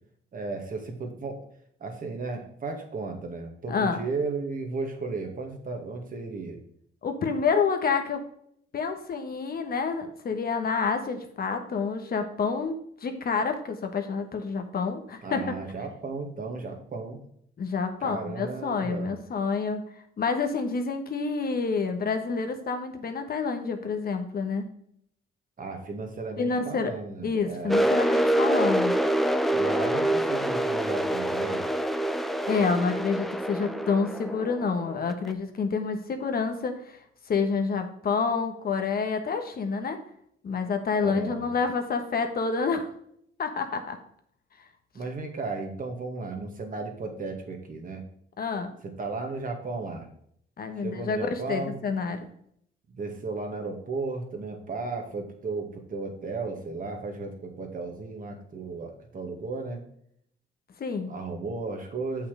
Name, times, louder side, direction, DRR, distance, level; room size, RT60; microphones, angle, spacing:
voice 1, 0.3-1.4 1.8-6.6 15.2-17.2 18.0-19.1 25.6-27.8 29.5-31.7 41.0-41.5 44.9-48.0 48.8-50.1 50.8-51.8 52.9-59.8 61.0-62.3, right 3 dB, 45° right, 3 dB, 2.0 m, -35 dB
voice 2, 3.7-4.0 7.0-8.2 8.7-15.5 17.6-19.8 20.2-24.6 26.4-26.9 27.2-28.9 32.5-37.0 37.3-40.0 40.4-42.9 43.4-44.0 48.4-48.7 50.6-52.2 60.8-61.1, left 5 dB, 50° left, 6 dB, 1.3 m, -28 dB
sound 1, 27.7-35.3, right 1 dB, ahead, 0.6 m, -26 dB
7.0 x 5.8 x 5.0 m, 0.68 s
cardioid pair, 90°, 20 cm